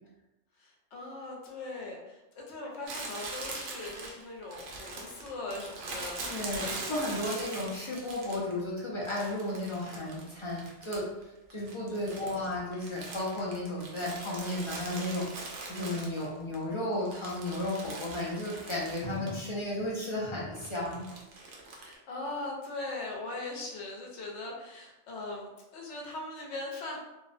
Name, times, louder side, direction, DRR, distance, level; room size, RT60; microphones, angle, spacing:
voice 1, 0.6-6.2 6.6-7.4 12.0-12.5 21.7-27.0, left 2 dB, 80° left, -1 dB, 0.9 m, -40 dB
Crumpling crinkling, 2.9-8.6 9.1-11.2 11.5-16.6 16.9-19.4 19.6-19.7 20.6-21.9, right 3 dB, 85° right, 0.9 m, -42 dB
voice 2, 6.2-11.1 11.5-21.0, left 1 dB, 40° left, -6 dB, 0.4 m, -34 dB
2.6 x 2.1 x 2.4 m, 0.97 s
omnidirectional pair, 1.2 m